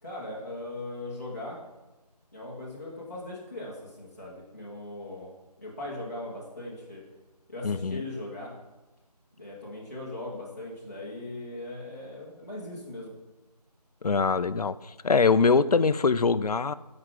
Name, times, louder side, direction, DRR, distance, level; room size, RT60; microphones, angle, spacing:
voice 1, 0.0-1.6 2.3-5.3 5.6-7.0 7.5-8.5 9.4-13.1, left 2 dB, 25° left, -7 dB, 1.2 m, -39 dB
voice 2, 7.6-8.0 14.0-16.7, left 4 dB, 65° left, 15 dB, 0.4 m, -23 dB
9.5 x 4.9 x 3.8 m, 1.1 s
figure-of-eight pair, 175°, 21 cm